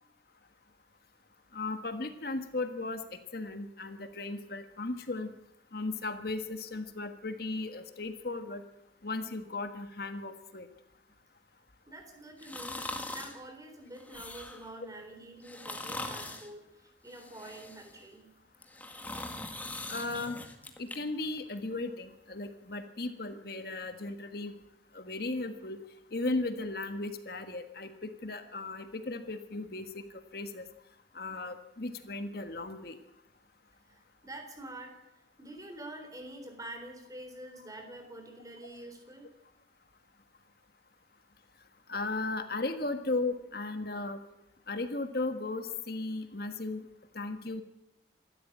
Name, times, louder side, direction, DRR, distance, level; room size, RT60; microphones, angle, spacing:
voice 1, 1.5-5.3 5.7-8.6 9.0-10.7 19.9-20.4 20.8-24.6 24.9-25.8 26.1-30.7 31.1-33.0 41.9-44.2 44.7-46.9 47.1-47.6, left 2 dB, 55° left, 8 dB, 1.5 m, -36 dB
voice 2, 11.9-12.9 13.1-18.3 33.9-35.0 35.4-39.3, right 1 dB, 20° right, 5 dB, 3.8 m, -46 dB
sound 1, 12.4-13.4 14.0-14.7 15.4-16.5 17.1-18.0 18.5-21.0 21.4-21.5, left 2 dB, 10° left, 1.8 m, -41 dB
26.0 x 13.0 x 8.6 m, 0.84 s
head